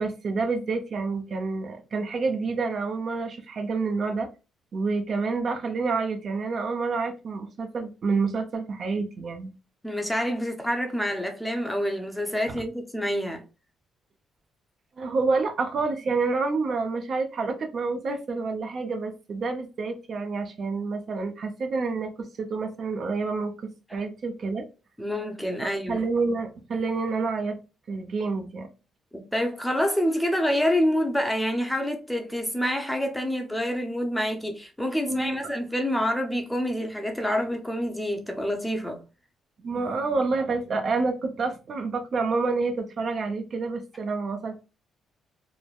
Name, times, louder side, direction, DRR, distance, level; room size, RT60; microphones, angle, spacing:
voice 1, 0.0-4.3 4.7-9.5 12.5-12.6 15.0-24.6 25.6-27.6 27.9-28.7 35.1-35.4 39.6-44.6, right 4 dB, 50° right, 0.5 m, -28 dB
voice 2, 9.8-13.4 23.9-24.0 25.0-26.0 29.1-39.0, equal, 5° left, 0.6 m, -27 dB
3.1 x 2.1 x 2.3 m
cardioid pair, 90°, 0 cm